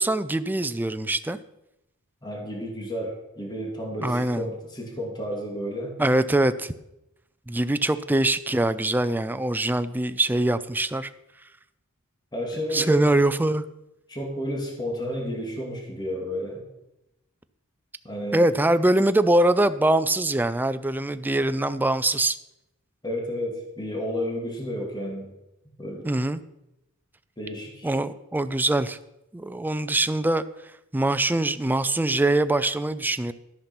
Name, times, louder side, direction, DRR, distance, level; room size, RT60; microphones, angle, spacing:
voice 1, 0.0-1.4 4.0-4.4 6.0-6.7 7.5-11.1 12.7-13.7 18.3-22.4 26.0-26.4 27.8-29.0 29.3-30.4 30.9-33.3, right 1 dB, 10° right, 12 dB, 0.4 m, -23 dB
voice 2, 2.2-5.9 12.3-13.1 14.1-16.6 18.0-18.5 23.0-25.3 25.8-26.1 27.4-27.9, equal, 20° left, 0 dB, 2.3 m, -31 dB
13.5 x 5.7 x 6.0 m, 0.88 s
head